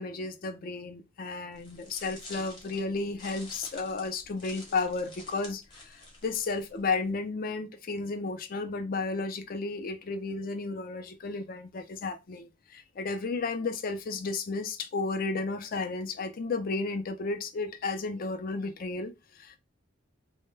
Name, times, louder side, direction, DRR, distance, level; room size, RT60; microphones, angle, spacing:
voice 1, 0.0-19.6, left 3 dB, 50° left, 0.4 m, -33 dB
sound 1, 1.6-7.1, left 1 dB, 25° left, 0.9 m, -49 dB
2.1 x 2.1 x 3.1 m
head